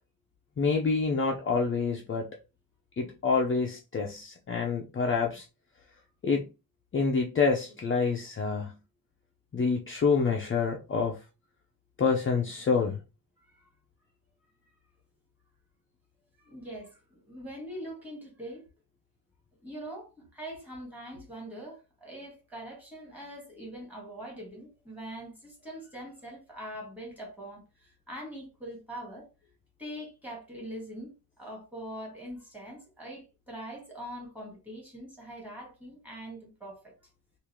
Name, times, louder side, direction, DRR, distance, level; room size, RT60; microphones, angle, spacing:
voice 1, 0.6-2.3 3.0-5.5 6.2-6.5 6.9-8.7 9.5-11.2 12.0-13.0, left 5 dB, 35° left, 0.5 m, -27 dB
voice 2, 13.4-13.7 16.4-18.6 19.6-29.3 29.8-36.9, equal, 5° right, 1.5 m, -43 dB
3.6 x 2.5 x 3.0 m
wide cardioid pair, 180°, 38 cm